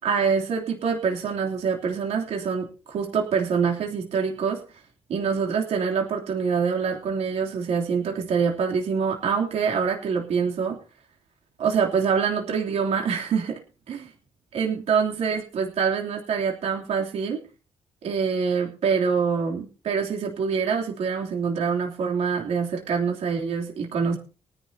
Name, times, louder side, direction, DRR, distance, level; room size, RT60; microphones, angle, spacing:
voice 1, 0.0-4.6 5.1-10.8 11.6-13.6 13.9-14.0 14.5-17.4 18.0-24.2, right 6 dB, 65° right, 0 dB, 3.3 m, -25 dB
23.0 x 10.5 x 2.9 m, 0.35 s
cardioid pair, 140°, 12 cm